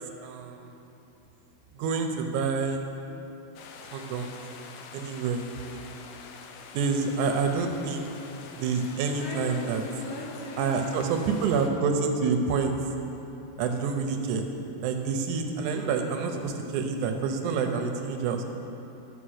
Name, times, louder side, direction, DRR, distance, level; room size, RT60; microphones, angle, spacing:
voice 1, 0.2-0.7 1.8-2.8 3.9-4.3 4.9-5.4 6.7-8.1 8.6-9.8 10.6-12.7 13.6-14.5 14.8-18.4, right 5 dB, 75° right, 4 dB, 1.9 m, -27 dB
sound 1, 3.6-11.7, left 5 dB, 75° left, 1.8 m, -45 dB
voice 2, 5.5-6.4 9.2-10.9, left 1 dB, 55° left, -3 dB, 2.1 m, -41 dB
11.5 x 5.8 x 6.4 m, 2.9 s
omnidirectional pair, 3.9 m